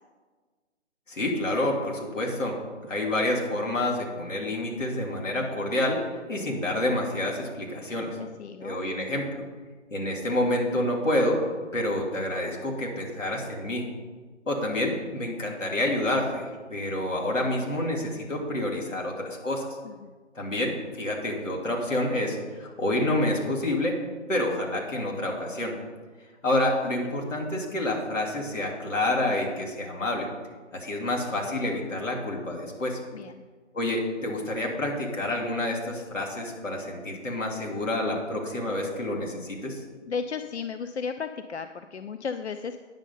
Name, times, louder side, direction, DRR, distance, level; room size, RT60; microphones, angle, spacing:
voice 1, 1.1-2.5 2.9-8.2 8.6-9.3 9.9-11.4 11.7-13.9 14.5-19.7 20.3-24.0 24.3-25.7 26.4-30.3 30.7-33.0 33.7-39.8, left 1 dB, 80° left, -1 dB, 2.8 m, -28 dB
voice 2, 8.2-8.8 19.8-20.1 33.1-33.4 40.1-42.8, left 5 dB, 60° left, 9 dB, 0.5 m, -34 dB
9.8 x 6.4 x 5.5 m, 1.4 s
figure-of-eight pair, 165°, 37 cm